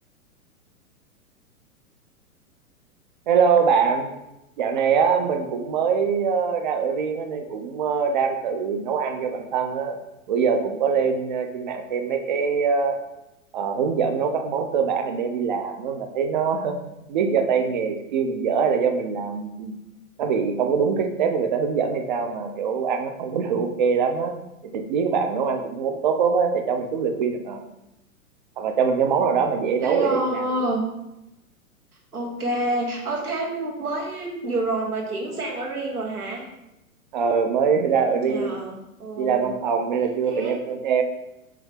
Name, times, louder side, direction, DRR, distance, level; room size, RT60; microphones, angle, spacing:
voice 1, 3.3-4.1 4.6-10.0 10.3-13.0 13.5-16.8 17.1-19.7 20.2-24.3 24.7-27.6 28.6-30.4 37.1-38.6 39.2-41.0, right 6 dB, 35° right, 5 dB, 0.4 m, -23 dB
voice 2, 29.8-30.8 32.1-36.5 37.9-39.6 40.2-40.6, right 2 dB, 85° right, -1 dB, 1.0 m, -28 dB
4.8 x 2.7 x 3.3 m, 0.90 s
figure-of-eight pair, 110°, 43 cm